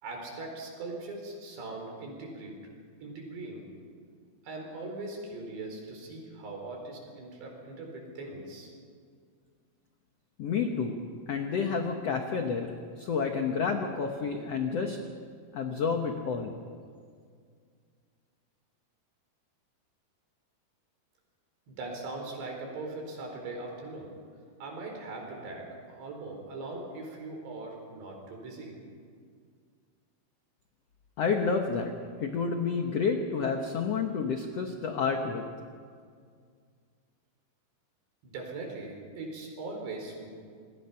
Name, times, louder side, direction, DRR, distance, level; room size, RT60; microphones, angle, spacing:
voice 1, 0.0-2.6 3.0-3.6 4.4-8.7 21.7-24.1 24.6-28.8 38.2-40.3, right 2 dB, 85° right, 1 dB, 6.6 m, -40 dB
voice 2, 10.4-11.0 11.3-15.0 15.5-16.5 31.2-31.9 32.2-35.4, left 5 dB, 80° left, 4 dB, 1.4 m, -29 dB
27.0 x 21.5 x 5.8 m, 2.1 s
omnidirectional pair, 4.8 m